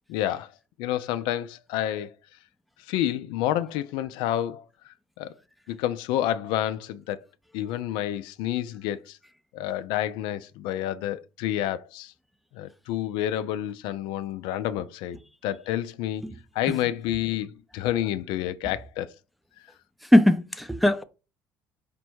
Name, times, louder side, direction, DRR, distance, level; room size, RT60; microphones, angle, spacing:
voice 1, 0.1-0.5 0.8-2.1 2.9-5.3 5.7-7.2 7.5-9.2 9.5-12.1 12.5-16.2 16.5-19.1, left 12 dB, 80° left, 0.4 m, -29 dB
voice 2, 20.1-21.0, left 1 dB, ahead, 0.5 m, -19 dB
5.1 x 2.2 x 4.5 m
supercardioid pair, 85°, 8 cm